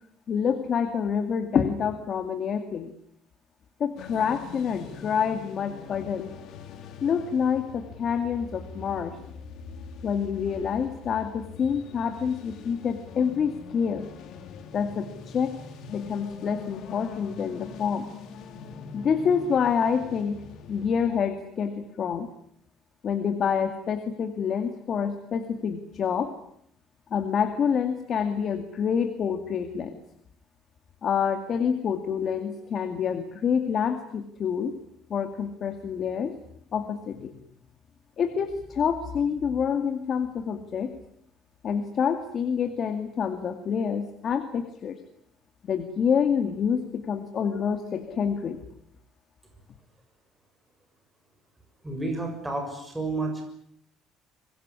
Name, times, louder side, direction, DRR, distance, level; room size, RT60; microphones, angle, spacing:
voice 1, 0.3-2.9 3.8-6.3 7.0-9.2 10.0-14.1 14.7-15.5 15.9-18.0 18.9-20.4 20.7-22.3 23.0-26.3 27.1-30.0 31.0-34.8 35.1-36.3 36.7-37.3 38.2-40.9 41.6-45.0 45.7-48.6, left 7 dB, 40° left, 7 dB, 2.2 m, -27 dB
sound 1, 4.0-21.2, left 5 dB, 55° left, 3.4 m, -43 dB
voice 2, 51.8-53.4, right 2 dB, 10° right, 3 dB, 6.6 m, -30 dB
25.0 x 21.0 x 9.8 m, 0.71 s
cardioid pair, 155°, 0 cm